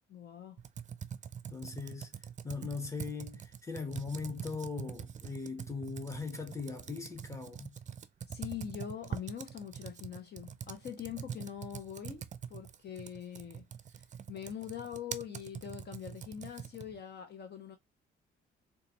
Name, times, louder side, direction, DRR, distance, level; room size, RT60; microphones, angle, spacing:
voice 1, 0.1-0.6 8.3-13.7 14.3-17.8, left 9 dB, 55° left, 0.8 m, -43 dB
Computer keyboard, 0.6-17.0, right 8 dB, 40° right, 0.5 m, -44 dB
voice 2, 1.5-2.1 2.4-7.8, left 4 dB, 15° left, 1.2 m, -40 dB
3.9 x 2.4 x 2.8 m
cardioid pair, 90°, 20 cm